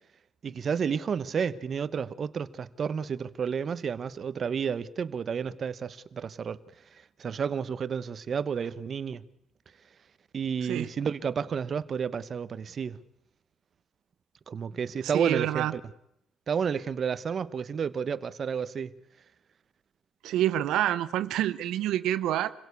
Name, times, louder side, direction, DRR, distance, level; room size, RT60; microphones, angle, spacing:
voice 1, 0.4-6.6 6.9-9.2 10.3-13.0 14.5-15.8 16.5-19.0, right 6 dB, 50° right, 1.1 m, -31 dB
voice 2, 15.0-15.7 20.2-22.5, right 12 dB, 85° right, 0.8 m, -27 dB
26.5 x 17.0 x 8.4 m
cardioid pair, 90°, 0 cm